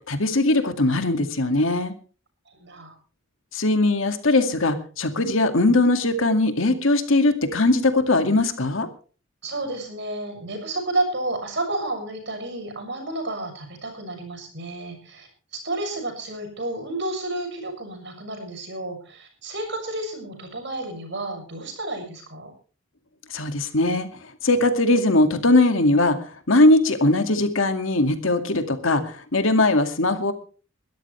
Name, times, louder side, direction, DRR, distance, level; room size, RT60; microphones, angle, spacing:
voice 1, 0.1-1.9 3.5-8.9 23.3-24.1 24.4-26.2 26.5-30.3, left 2 dB, 75° left, 8 dB, 2.2 m, -20 dB
voice 2, 2.5-2.9 9.4-22.5, right 2 dB, 60° right, 3 dB, 6.6 m, -31 dB
22.0 x 13.0 x 3.3 m, 0.37 s
head